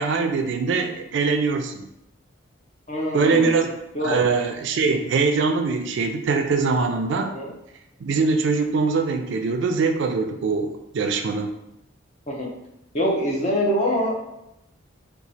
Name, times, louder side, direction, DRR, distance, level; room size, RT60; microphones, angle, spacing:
voice 1, 0.0-1.9 3.1-3.7 4.0-7.3 8.0-11.5, right 4 dB, 65° right, 6 dB, 0.3 m, -22 dB
voice 2, 2.9-3.5 3.9-4.2 7.2-7.5 12.3-12.5 12.9-14.1, equal, 35° left, -2 dB, 0.7 m, -24 dB
2.9 x 2.3 x 4.0 m, 0.85 s
head